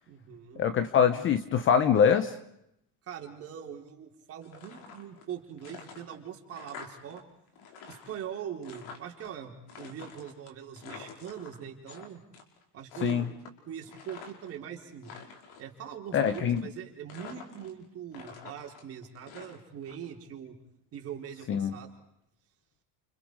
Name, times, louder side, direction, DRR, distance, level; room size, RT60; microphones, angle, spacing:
voice 1, 0.1-0.6 3.1-7.2 7.9-12.2 12.7-13.3 13.7-15.1 15.6-20.5 20.9-21.9, right 9 dB, 30° right, 1 dB, 4.5 m, -42 dB
voice 2, 0.6-2.3 13.0-13.2 16.1-16.6 21.5-21.7, left 7 dB, 25° left, 10 dB, 1.0 m, -24 dB
sound 1, 4.4-5.3 5.6-7.2 7.5-9.3 9.7-12.1 12.3-12.6 12.9-14.6 14.9-15.7 16.2-16.8 17.1-17.8 18.1-19.9, left 6 dB, 55° left, 5.6 m, -47 dB
29.5 x 29.5 x 4.9 m, 0.77 s
cardioid pair, 165°, 44 cm